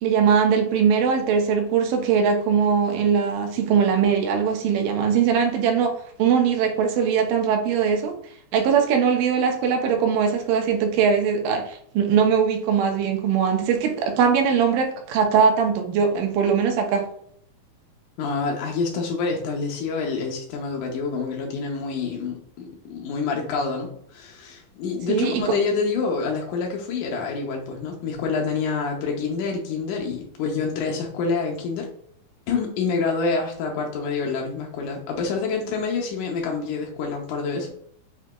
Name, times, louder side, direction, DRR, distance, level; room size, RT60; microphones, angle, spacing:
voice 1, 0.0-8.2 8.5-17.1 25.1-25.4, right 6 dB, 80° right, 3 dB, 2.0 m, -21 dB
voice 2, 18.2-31.9 32.5-37.7, left 4 dB, 85° left, 0 dB, 1.7 m, -27 dB
6.0 x 2.8 x 2.2 m, 0.65 s
omnidirectional pair, 4.3 m